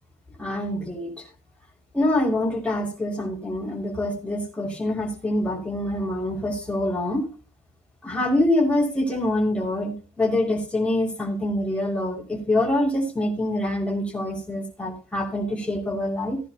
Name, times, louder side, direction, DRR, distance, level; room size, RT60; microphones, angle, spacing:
voice 1, 0.4-1.1 1.9-7.3 8.0-16.4, left 1 dB, 5° left, -1 dB, 5.8 m, -25 dB
17.5 x 10.5 x 2.9 m, 0.35 s
cardioid pair, 110°, 17 cm